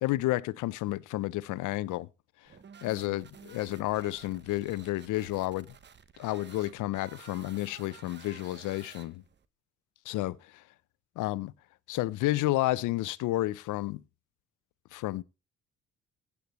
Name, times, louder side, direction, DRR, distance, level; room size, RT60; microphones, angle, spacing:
voice 1, 0.0-2.1 2.8-5.7 6.2-9.2 10.1-10.4 11.2-11.5 11.9-14.0 14.9-15.2, left 17 dB, 90° left, 0.6 m, -31 dB
sound 1, 2.4-9.4, right 7 dB, 35° right, 0.9 m, -53 dB
16.0 x 8.4 x 3.0 m
cardioid pair, 90°, 30 cm